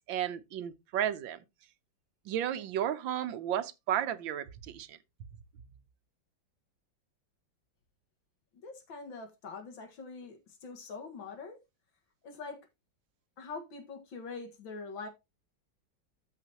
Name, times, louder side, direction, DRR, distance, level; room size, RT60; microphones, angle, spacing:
voice 1, 0.1-1.4 2.3-5.0, right 10 dB, 80° right, 1.5 m, -33 dB
voice 2, 8.5-11.6 12.2-12.7 13.4-15.1, left 4 dB, 85° left, 2.3 m, -44 dB
13.5 x 5.0 x 2.9 m
omnidirectional pair, 2.1 m